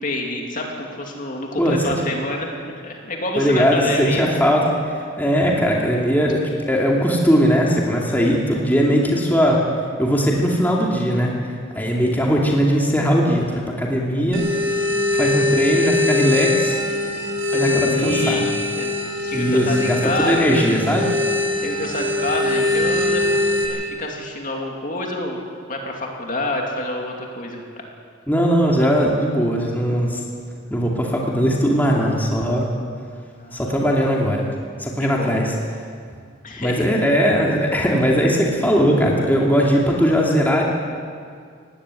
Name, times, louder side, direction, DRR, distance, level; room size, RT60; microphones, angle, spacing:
voice 1, 0.0-2.5 2.7-4.4 17.5-18.4 18.8-20.6 21.6-23.4 23.7-25.4 25.7-27.9 33.4-33.7 35.0-35.4 36.4-37.0, left 1 dB, 40° left, 1 dB, 2.7 m, -27 dB
voice 2, 1.6-2.0 3.4-4.6 5.2-6.4 6.7-9.6 10.0-11.3 11.7-14.5 15.1-16.8 17.5-18.5 19.3-20.0 20.2-21.1 28.3-30.2 30.7-32.7 33.5-34.4 34.8-35.5 36.6-40.6, equal, 10° left, -2 dB, 2.5 m, -19 dB
sound 1, 14.3-23.7, left 2 dB, 60° right, 5.3 m, -22 dB
18.0 x 16.5 x 9.8 m, 2.1 s
head